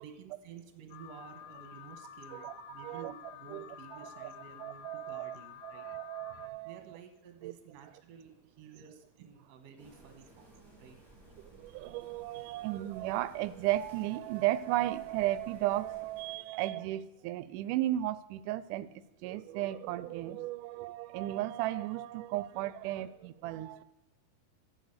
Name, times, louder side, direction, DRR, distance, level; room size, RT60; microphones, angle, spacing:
voice 1, 0.0-5.9 6.6-11.0, right 7 dB, 60° right, 7 dB, 2.3 m, -52 dB
Alarm, 0.9-6.5, left 10 dB, 80° left, 1.6 m, -50 dB
voice 2, 2.3-3.1 3.5-3.7 4.0-4.3 4.6-5.4 5.6-6.8 7.4-7.5 11.4-18.9 19.2-23.8, right 15 dB, 85° right, 15 dB, 2.1 m, -35 dB
sound 1, 9.8-16.4, right 2 dB, 5° right, 4.0 m, -58 dB
10.0 x 7.9 x 6.5 m, 0.94 s
omnidirectional pair, 3.7 m